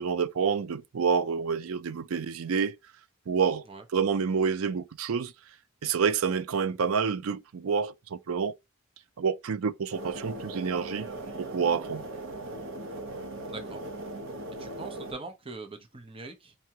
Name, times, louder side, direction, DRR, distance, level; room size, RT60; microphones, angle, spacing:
voice 1, 0.0-2.8 3.3-3.6 3.9-5.3 5.8-8.5 9.2-11.1 11.4-12.0, right 6 dB, 80° right, 0.4 m, -28 dB
sound 1, 9.9-15.1, right 2 dB, 60° right, 1.0 m, -39 dB
voice 2, 13.4-13.8 14.6-16.5, right 3 dB, 25° right, 0.8 m, -42 dB
4.7 x 2.8 x 2.8 m
head